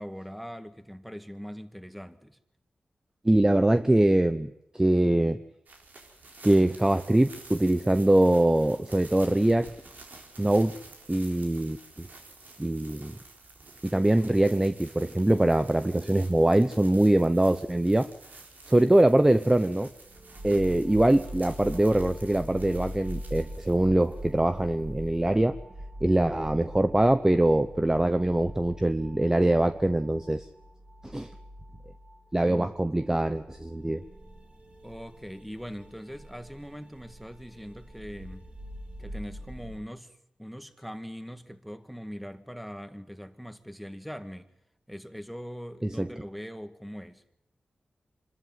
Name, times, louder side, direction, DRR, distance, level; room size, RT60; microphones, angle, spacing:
voice 1, 0.0-2.4 20.5-20.8 32.4-32.7 34.8-38.5 39.0-44.5 44.9-47.2, equal, ahead, 1.9 m, -41 dB
voice 2, 3.2-5.4 6.4-9.7 10.4-10.7 11.1-12.1 12.6-13.2 13.8-18.1 18.7-19.9 20.4-25.5 26.0-30.5 31.0-31.3 32.3-34.0 45.8-46.1, right 1 dB, 15° right, 0.9 m, -23 dB
sound 1, 5.7-25.4, right 3 dB, 70° right, 4.1 m, -50 dB
sound 2, 20.1-39.8, equal, 40° right, 3.5 m, -43 dB
25.0 x 13.0 x 9.5 m
cardioid pair, 45°, 3 cm